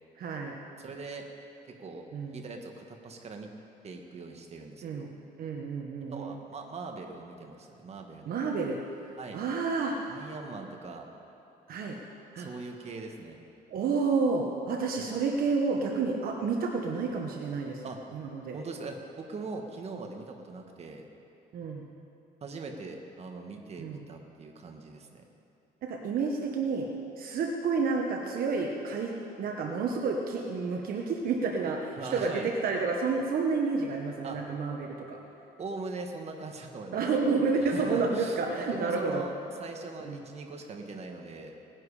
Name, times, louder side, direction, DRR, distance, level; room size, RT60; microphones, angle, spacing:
voice 1, 0.2-0.5 2.1-2.4 4.8-5.1 5.4-6.3 8.3-8.8 9.3-10.3 11.7-12.0 12.3-12.5 13.7-17.8 18.1-18.6 21.5-21.8 23.8-24.0 25.8-26.9 27.2-35.2 36.9-39.2 40.0-40.2, right 4 dB, 60° right, 1 dB, 1.2 m, -30 dB
voice 2, 0.8-1.3 1.8-2.0 2.3-3.5 3.8-5.1 6.1-8.4 9.2-9.4 10.1-11.1 12.4-13.4 15.0-15.1 17.8-18.0 18.5-21.1 22.4-25.2 31.9-32.5 34.2-34.4 35.6-37.0 37.6-41.5, right 3 dB, 40° right, 3 dB, 1.6 m, -41 dB
19.0 x 10.5 x 4.9 m, 2.8 s
cardioid pair, 110°, 17 cm